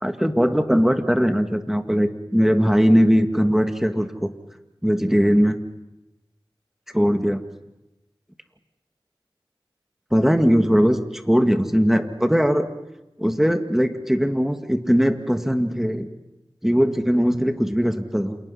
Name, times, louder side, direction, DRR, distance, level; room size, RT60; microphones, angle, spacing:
voice 1, 0.0-4.3 4.8-5.6 6.9-7.4 10.1-11.0 11.3-12.7 13.2-16.1 16.6-18.4, equal, 5° right, 7 dB, 1.9 m, -20 dB
28.5 x 27.5 x 5.7 m, 0.97 s
wide cardioid pair, 50°, 9 cm